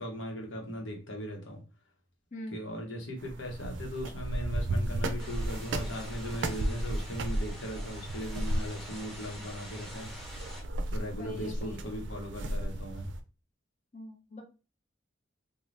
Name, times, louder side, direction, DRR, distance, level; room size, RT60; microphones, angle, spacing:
voice 1, 0.0-1.6 2.5-10.1 10.9-13.1, equal, 85° left, 1.0 m, -38 dB
sound 1, 3.2-13.2, right 1 dB, 70° right, 0.4 m, -35 dB
sound 2, 5.2-10.6, equal, ahead, 0.9 m, -47 dB
voice 2, 11.2-12.0 13.9-14.4, left 1 dB, 40° left, 0.8 m, -43 dB
2.6 x 2.3 x 3.2 m
head